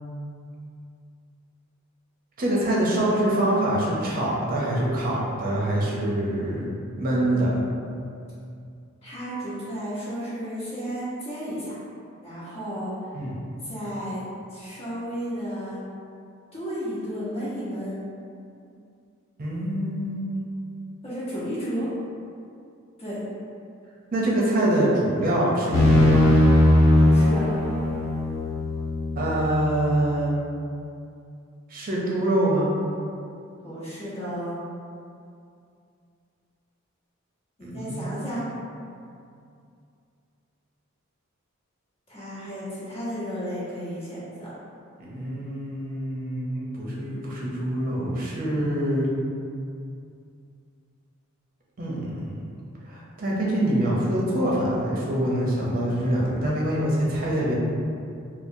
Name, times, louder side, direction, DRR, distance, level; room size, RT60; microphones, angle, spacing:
voice 1, 2.4-6.7 7.0-7.6 13.1-13.4 19.4-20.3 24.1-26.2 29.2-30.3 31.7-32.7 37.6-38.3 45.0-49.1 51.8-52.3 52.8-57.5, right 1 dB, 45° right, -5 dB, 0.7 m, -25 dB
voice 2, 7.2-7.7 9.0-11.8 12.2-12.9 13.6-14.2 14.5-15.8 16.5-18.0 21.0-21.9 23.0-23.2 27.0-27.5 33.6-34.6 37.6-38.5 42.1-44.5, equal, 30° left, -11 dB, 1.0 m, -33 dB
sound 1, 25.7-29.5, left 1 dB, 65° left, 0.5 m, -19 dB
4.3 x 2.0 x 2.7 m, 2.4 s
head